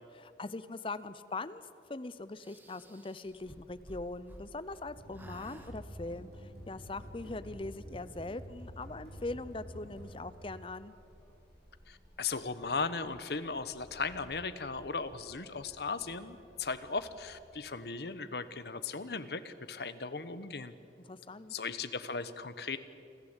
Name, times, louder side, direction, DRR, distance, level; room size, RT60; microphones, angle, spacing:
voice 1, 0.1-1.6 1.9-10.9 21.0-21.5, left 2 dB, 30° left, 14 dB, 0.6 m, -41 dB
sound 1, 2.4-4.8 5.1-5.7, right 1 dB, 10° right, 1.5 m, -53 dB
sound 2, 3.2-17.4, equal, 10° left, 6.1 m, -60 dB
sound 3, 4.8-10.5, equal, 60° right, 6.8 m, -48 dB
voice 2, 11.9-20.7 21.5-22.8, left 4 dB, 60° left, 12 dB, 1.0 m, -37 dB
27.5 x 13.5 x 8.1 m, 2.6 s
head